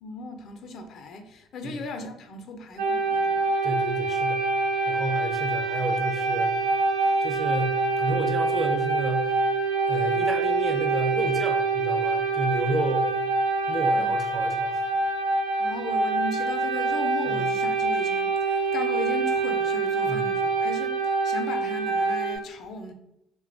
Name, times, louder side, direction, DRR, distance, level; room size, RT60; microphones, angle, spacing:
voice 1, 0.0-3.5 13.9-14.1 15.6-22.9, left 2 dB, 60° left, 0.4 m, -37 dB
sound 1, 2.8-22.4, right 3 dB, 90° right, 0.4 m, -25 dB
voice 2, 3.6-4.4 4.9-6.6 7.2-9.4 9.9-13.1 13.7-14.8 17.3-17.5 20.1-20.3, right 1 dB, 25° right, 0.5 m, -31 dB
2.9 x 2.1 x 2.5 m
supercardioid pair, 70°, 0 cm